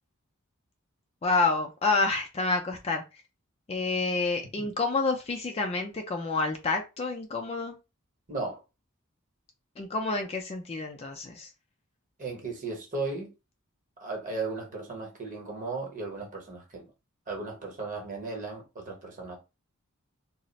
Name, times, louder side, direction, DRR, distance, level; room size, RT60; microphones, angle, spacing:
voice 1, 1.2-3.0 3.7-7.8 9.8-11.5, left 3 dB, 25° left, 0.3 m, -28 dB
voice 2, 8.3-8.6 12.2-13.3 14.0-16.9 17.3-19.4, right 3 dB, 35° right, 0.9 m, -36 dB
2.4 x 2.0 x 3.9 m
head